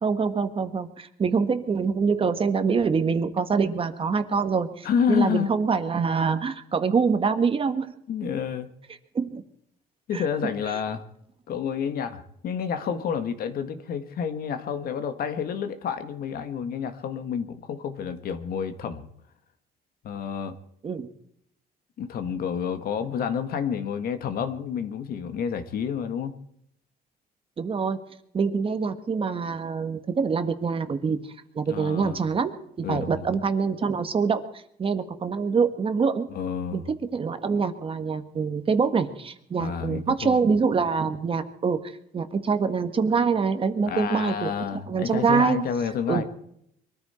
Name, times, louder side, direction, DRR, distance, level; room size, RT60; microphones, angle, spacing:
voice 1, 0.0-7.9 9.1-9.4 10.1-10.2 10.6-10.7 20.8-21.1 27.6-28.0 28.3-31.2 31.5-36.3 36.7-45.7 46.1-46.2, right 5 dB, 35° right, 9 dB, 1.6 m, -25 dB
voice 2, 4.8-5.5 8.1-8.7 10.1-11.0 11.5-19.1 20.0-20.6 22.0-26.3 31.7-32.2 32.8-33.2 36.3-36.8 39.6-40.3 43.9-46.2, left 7 dB, 60° left, 9 dB, 1.8 m, -29 dB
23.0 x 13.5 x 4.4 m, 0.70 s
cardioid pair, 110°, 17 cm